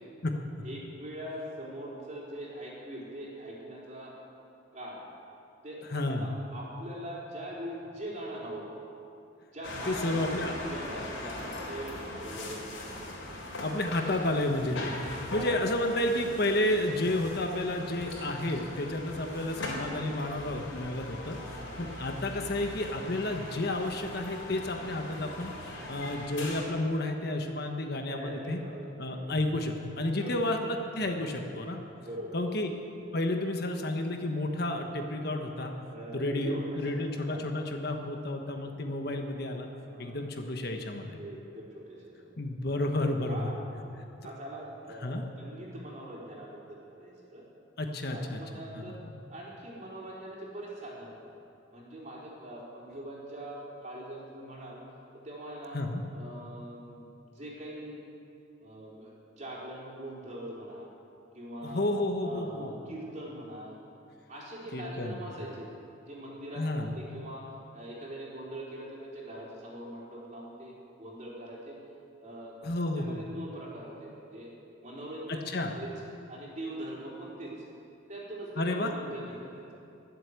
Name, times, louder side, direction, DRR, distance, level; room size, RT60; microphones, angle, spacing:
voice 1, 0.6-4.1 4.7-5.0 5.6-8.7 9.5-12.7 15.3-15.5 21.2-21.8 28.1-29.4 30.2-30.4 32.0-32.7 35.9-37.4 38.4-38.6 39.8-40.2 41.1-42.4 43.3-43.6 44.2-47.4 48.1-49.0 49.3-51.1 51.7-54.8 55.2-55.8 56.1-58.0 58.6-60.9 61.3-61.9 62.2-63.7 64.3-65.7 66.0-67.5 67.7-71.8 72.2-72.5 73.0-74.5 74.8-76.0 76.3-77.7 78.1-79.7, right 1 dB, 35° right, -4 dB, 4.2 m, -42 dB
voice 2, 5.9-6.3 9.9-10.6 13.6-14.9 15.3-21.4 21.8-25.5 25.9-28.6 29.0-31.8 32.3-32.7 33.1-35.7 36.1-39.7 40.0-41.2 42.4-43.5 45.0-45.2 47.8-48.6 48.9-49.0 55.7-56.0 61.6-62.7 64.7-65.2 66.5-66.9 72.6-73.2 75.3-75.7 78.6-78.9, left 1 dB, 55° left, 4 dB, 1.2 m, -31 dB
sound 1, 9.6-26.7, left 1 dB, 75° left, 4.0 m, -40 dB
21.5 x 8.1 x 8.3 m, 2.7 s
head